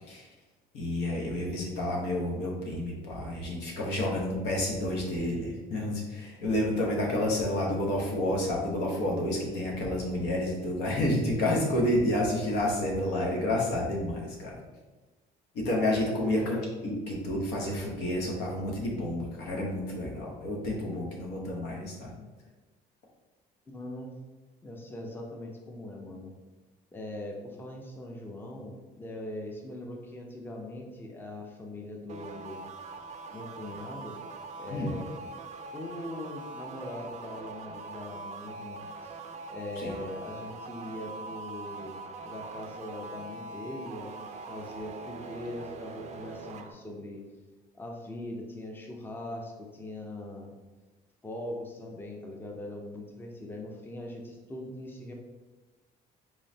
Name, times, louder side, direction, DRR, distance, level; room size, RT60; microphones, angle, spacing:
voice 1, 0.7-14.6 15.5-22.1 34.7-34.9 39.8-39.9, left 1 dB, 85° left, -2 dB, 1.0 m, -30 dB
voice 2, 15.9-16.5 16.8-17.0 23.7-24.2 24.6-26.3 26.9-32.6 33.3-34.2 34.6-35.1 35.7-39.1 39.5-42.0 42.2-47.2 47.7-50.5 51.2-55.1, left 1 dB, 10° left, 1 dB, 0.5 m, -41 dB
sound 1, 32.1-46.7, right 3 dB, 45° right, 0.4 m, -43 dB
3.8 x 3.1 x 2.7 m, 1.2 s
cardioid pair, 110°, 17 cm